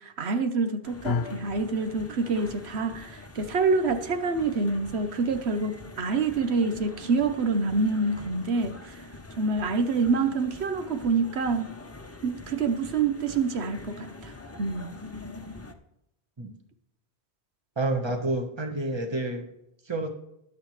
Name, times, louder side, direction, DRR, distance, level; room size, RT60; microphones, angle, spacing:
voice 1, 0.0-9.0 9.4-11.7 12.2-15.0, right 4 dB, 90° right, 8 dB, 1.2 m, -27 dB
sound 1, 0.8-15.7, left 2 dB, 15° left, 0.7 m, -45 dB
sound 2, 1.0-9.3, left 6 dB, 75° left, 0.9 m, -40 dB
voice 2, 17.8-19.5 19.9-20.1, right 2 dB, 25° right, 4 dB, 1.4 m, -29 dB
22.0 x 7.4 x 3.2 m, 0.85 s
omnidirectional pair, 1.1 m